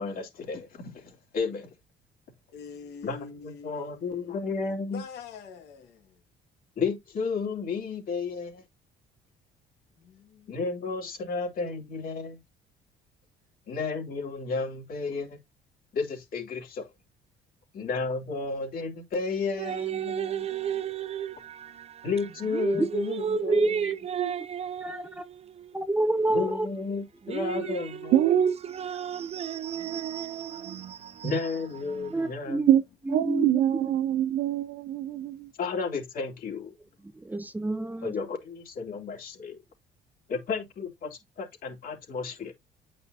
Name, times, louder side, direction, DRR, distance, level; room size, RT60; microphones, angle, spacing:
voice 1, 0.0-1.7 3.0-5.0 6.8-8.6 10.5-12.4 13.7-15.4 15.9-16.9 17.7-20.5 22.0-23.7 26.3-28.2 31.2-32.6 35.6-36.7 38.0-39.6 40.3-42.5, left 4 dB, 60° left, 3.2 m, -32 dB
voice 2, 2.5-6.2 10.0-10.7 29.0-29.3 30.1-31.3 31.9-32.0, left 6 dB, 75° left, 2.4 m, -47 dB
voice 3, 19.6-25.8 27.3-32.3, right 9 dB, 40° right, 0.4 m, -34 dB
voice 4, 23.3-23.9 24.8-25.2 25.7-26.7 27.5-27.7 32.1-32.7 33.1-33.9 37.1-38.1, right 2 dB, 10° right, 0.7 m, -28 dB
voice 5, 28.1-28.5 32.7-32.8 33.1-35.5, right 11 dB, 70° right, 0.9 m, -24 dB
9.1 x 5.4 x 2.8 m
cardioid pair, 110°, 17 cm